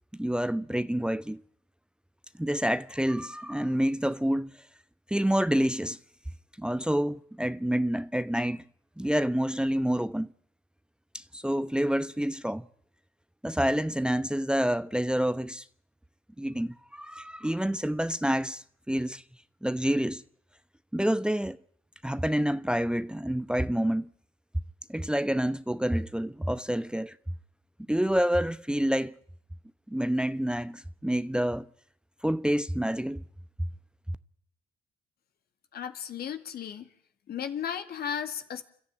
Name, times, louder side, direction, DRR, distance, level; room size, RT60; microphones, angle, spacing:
voice 1, 0.2-1.4 2.4-4.5 5.1-6.0 6.6-8.6 9.0-10.3 11.1-12.6 13.4-15.6 16.4-19.2 19.6-20.2 20.9-21.6 22.0-24.1 24.9-27.1 27.9-29.1 29.9-31.7 32.2-33.2 33.6-33.7, equal, 5° right, 0.9 m, -28 dB
voice 2, 35.7-36.9 37.3-38.6, left 8 dB, 60° left, 2.0 m, -35 dB
29.5 x 12.5 x 8.8 m
hypercardioid pair, 45°, 18 cm